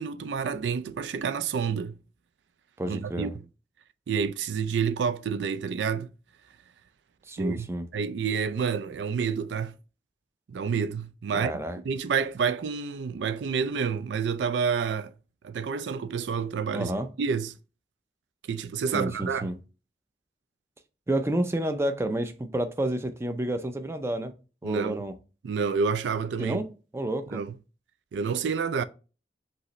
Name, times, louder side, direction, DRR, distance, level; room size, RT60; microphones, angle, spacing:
voice 1, 0.0-2.0 2.9-3.3 4.1-6.1 7.4-7.7 7.9-9.7 10.5-11.5 11.9-15.1 15.4-16.9 17.2-17.6 18.5-19.5 24.6-25.0 25.4-26.6 27.3-27.5 28.1-28.8, right 6 dB, 80° right, 0.4 m, -29 dB
voice 2, 2.8-3.3 7.3-7.9 11.3-11.8 16.7-17.1 18.9-19.6 21.1-24.3 24.6-25.1 26.4-26.6 26.9-27.4, right 1 dB, 15° right, 0.4 m, -29 dB
5.4 x 2.9 x 3.1 m
head